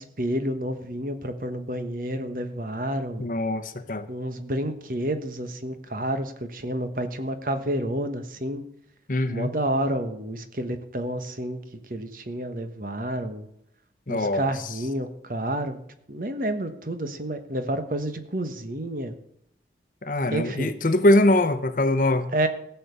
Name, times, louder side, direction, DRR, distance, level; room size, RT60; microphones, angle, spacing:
voice 1, 0.0-3.3 4.1-8.6 9.3-11.6 11.9-13.5 14.1-15.8 16.1-19.1 20.3-20.7 22.3-22.5, right 1 dB, 50° right, 8 dB, 1.3 m, -29 dB
voice 2, 3.2-4.1 9.1-9.5 14.1-14.5 20.0-22.3, left 1 dB, 50° left, 11 dB, 0.9 m, -22 dB
16.0 x 6.9 x 6.9 m, 0.75 s
head